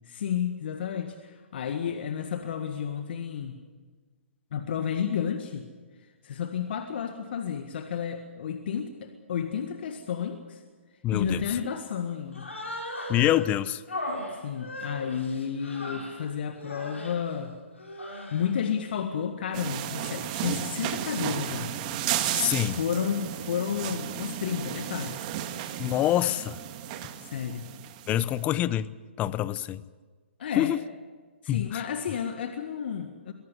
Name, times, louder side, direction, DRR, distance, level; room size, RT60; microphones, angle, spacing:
voice 1, 0.1-3.6 4.5-5.7 6.2-10.6 11.1-12.5 14.3-17.6 18.3-21.7 22.6-25.2 27.2-27.7 30.4-30.7 31.4-33.3, left 8 dB, 55° left, 7 dB, 1.7 m, -31 dB
voice 2, 11.0-11.6 13.1-13.8 22.3-22.8 25.8-26.6 28.1-28.9 29.2-29.8 30.6-30.8 31.5-31.9, left 13 dB, 20° left, 18 dB, 0.7 m, -26 dB
Human voice, 12.3-13.5 13.9-16.2 16.6-17.2 17.8-18.5, left 1 dB, 85° left, 6.0 m, -37 dB
sound 1, 19.5-28.3, right 10 dB, 35° right, 1.6 m, -33 dB
22.5 x 17.0 x 8.1 m, 1.4 s
hypercardioid pair, 135°, 7 cm